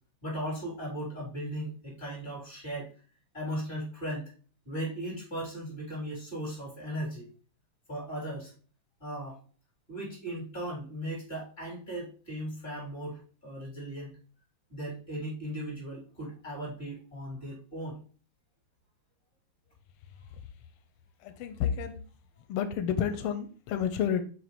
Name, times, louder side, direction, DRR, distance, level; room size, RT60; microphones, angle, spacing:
voice 1, 0.2-2.9 3.3-4.3 4.6-7.3 7.9-8.5 9.0-9.4 9.9-14.1 14.7-18.0, right 1 dB, 25° left, -3 dB, 3.7 m, -37 dB
voice 2, 21.2-22.0 22.5-24.2, left 8 dB, 90° left, 9 dB, 1.5 m, -30 dB
6.9 x 3.1 x 4.4 m, 0.39 s
omnidirectional pair, 2.4 m